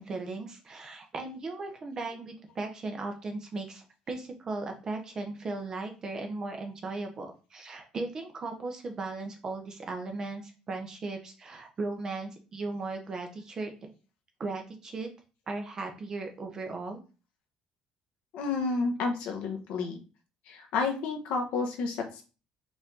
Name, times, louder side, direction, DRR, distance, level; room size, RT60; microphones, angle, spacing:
voice 1, 0.0-13.9 14.4-15.1 15.5-17.0, right 3 dB, 30° right, 4 dB, 0.7 m, -37 dB
voice 2, 18.3-20.0 20.5-22.2, left 4 dB, 75° left, 2 dB, 0.9 m, -30 dB
5.0 x 2.6 x 3.6 m, 0.34 s
cardioid pair, 150°, 2 cm